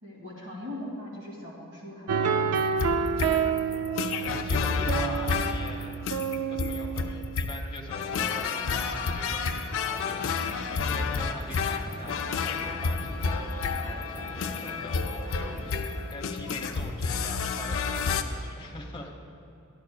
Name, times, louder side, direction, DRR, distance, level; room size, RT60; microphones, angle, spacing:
voice 1, 0.0-2.5 3.0-3.4, left 1 dB, 55° right, -5 dB, 2.3 m, -41 dB
sound 1, 2.1-8.2, right 6 dB, 75° right, 0.4 m, -29 dB
sound 2, 2.6-18.2, left 5 dB, 65° left, 0.5 m, -30 dB
voice 2, 4.2-6.0 6.5-19.2, left 2 dB, 25° left, 0 dB, 1.1 m, -43 dB
Crowd, 9.8-16.1, right 1 dB, 40° right, 1.4 m, -45 dB
12.5 x 11.0 x 2.3 m, 2.5 s
head